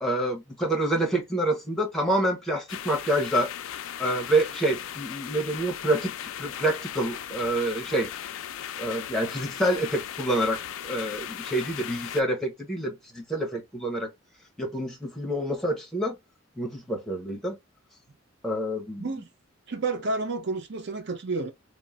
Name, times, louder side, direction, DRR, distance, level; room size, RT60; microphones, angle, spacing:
voice 1, 0.0-3.5 4.0-6.1 6.4-8.1 8.8-14.1 14.6-16.2 16.6-17.6 18.4-19.1, right 1 dB, ahead, 0.7 m, -27 dB
sound 1, 2.7-12.2, left 10 dB, 80° left, 0.3 m, -37 dB
voice 2, 19.7-21.5, right 3 dB, 55° right, 0.6 m, -30 dB
3.0 x 2.0 x 2.3 m
head